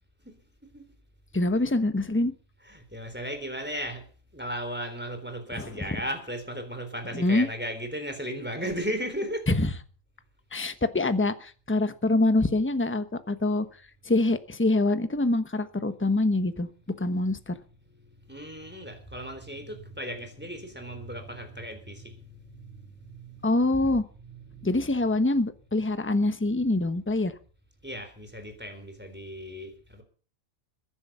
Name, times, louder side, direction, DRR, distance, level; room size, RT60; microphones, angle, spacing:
voice 1, 0.2-0.9 1.5-1.6 2.6-4.1 4.3-9.6 17.9-23.7 24.2-25.1 27.8-30.0, equal, 5° right, 6 dB, 3.9 m, -36 dB
voice 2, 1.3-2.3 5.6-5.7 7.1-7.5 9.5-9.7 10.5-13.7 14.0-16.7 17.0-17.6 23.4-24.0 24.6-27.3, left 2 dB, 10° left, 11 dB, 1.0 m, -25 dB
22.5 x 10.5 x 5.7 m, 0.41 s
omnidirectional pair, 1.4 m